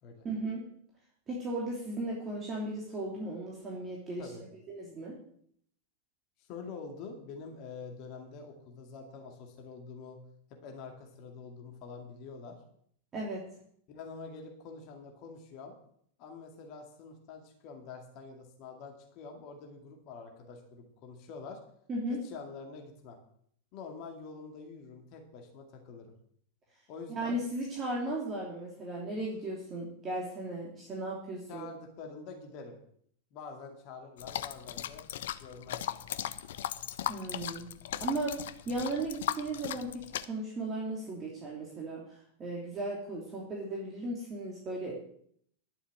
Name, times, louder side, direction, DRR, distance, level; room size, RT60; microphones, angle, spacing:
voice 1, 0.2-0.6 1.3-4.3 4.7-5.2 13.1-13.4 21.9-22.2 27.1-31.7 37.1-37.7 38.0-38.3 38.7-42.0 42.4-44.9, right 2 dB, 25° right, -3 dB, 3.0 m, -36 dB
voice 2, 6.5-10.2 10.6-12.6 13.9-15.7 16.2-21.6 22.2-23.2 23.7-26.1 26.9-27.4 31.5-32.8 33.3-35.0 35.4-36.4, left 4 dB, 40° left, 2 dB, 2.3 m, -46 dB
sound 1, 34.2-40.2, left 11 dB, 60° left, 0.6 m, -37 dB
11.5 x 7.1 x 7.5 m, 0.65 s
figure-of-eight pair, 90°, 0 cm